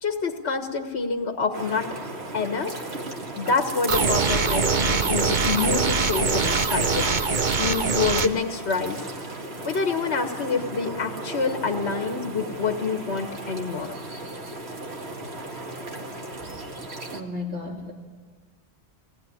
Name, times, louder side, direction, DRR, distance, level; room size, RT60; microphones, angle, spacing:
voice 1, 0.0-1.9 2.3-2.8 3.4-7.1 7.6-9.0 9.6-13.9, left 4 dB, 75° left, 5 dB, 1.7 m, -27 dB
sound 1, 1.5-17.2, right 2 dB, 70° right, 2.4 m, -36 dB
sound 2, 3.9-8.3, right 4 dB, 45° right, 1.1 m, -23 dB
voice 2, 17.1-17.9, left 2 dB, 85° right, 0 dB, 2.8 m, -34 dB
24.5 x 18.5 x 9.9 m, 1.5 s
omnidirectional pair, 1.1 m